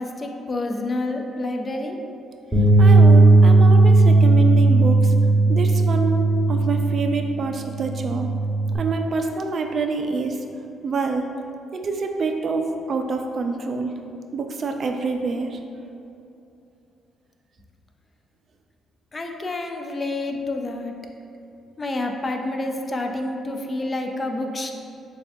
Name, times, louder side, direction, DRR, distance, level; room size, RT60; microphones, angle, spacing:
voice 1, 0.0-2.0 19.1-20.9 21.8-24.7, left 2 dB, 30° left, 3 dB, 0.4 m, -28 dB
Bass guitar, 2.5-8.8, right 2 dB, ahead, 0.9 m, -16 dB
voice 2, 2.6-5.1 5.5-8.4 8.7-10.4 10.8-11.3 11.7-14.0 14.3-15.6, right 4 dB, 50° right, 4 dB, 0.3 m, -26 dB
6.7 x 2.3 x 2.6 m, 2.7 s
cardioid pair, 90°, 0 cm